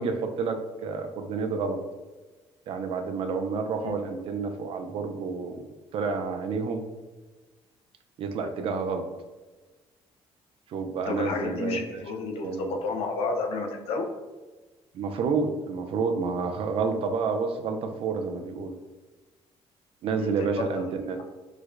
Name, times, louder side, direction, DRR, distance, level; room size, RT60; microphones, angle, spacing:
voice 1, 0.0-1.8 2.7-5.6 5.9-6.8 8.2-9.1 10.7-12.0 12.3-12.7 14.9-18.7 20.0-21.2, right 4 dB, 60° right, 6 dB, 0.4 m, -29 dB
voice 2, 11.1-14.1 20.2-20.8 21.1-21.2, left 3 dB, 65° left, 4 dB, 0.5 m, -31 dB
4.6 x 2.1 x 2.4 m, 1.2 s
cardioid pair, 120°, 11 cm